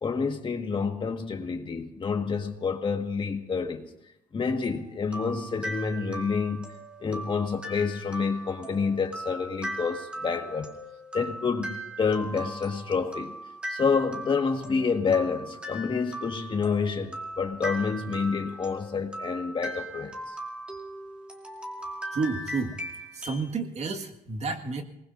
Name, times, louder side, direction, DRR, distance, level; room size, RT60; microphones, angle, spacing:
voice 1, 0.0-3.9 4.3-6.6 7.0-10.7 11.1-13.3 13.7-20.2, left 5 dB, 35° left, 4 dB, 1.7 m, -28 dB
sound 1, 4.6-23.5, right 1 dB, 5° right, 3.2 m, -39 dB
voice 2, 22.1-22.8 23.1-24.8, right 4 dB, 50° right, 4 dB, 1.9 m, -30 dB
27.0 x 20.0 x 2.7 m, 0.87 s
cardioid pair, 130°, 15 cm